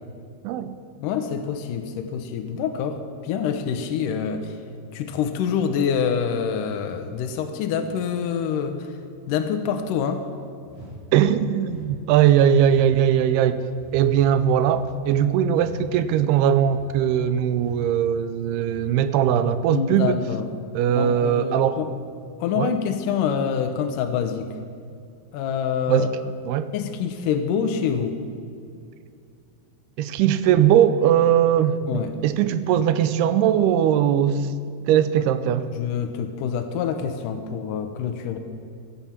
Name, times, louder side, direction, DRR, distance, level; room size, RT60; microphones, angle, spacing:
voice 1, 1.0-4.6 4.9-8.9 9.3-10.2 19.7-20.5 20.9-21.9 22.4-24.5 25.3-26.1 26.7-28.2 31.9-32.1 35.7-38.4, left 7 dB, 80° left, 6 dB, 2.0 m, -26 dB
sound 1, 10.6-11.0 11.6-11.9 12.6-12.9 13.7-14.0 14.6-14.9 15.5-15.8 16.6-16.9 17.5-17.8 18.6-18.9, equal, 50° right, 5.1 m, -45 dB
voice 2, 11.1-13.6 13.9-20.2 20.7-21.8 22.6-22.7 25.9-26.1 26.4-26.7 30.0-34.5 34.9-35.7, right 9 dB, 85° right, 13 dB, 2.6 m, -20 dB
16.0 x 11.5 x 5.8 m, 2.4 s
omnidirectional pair, 4.7 m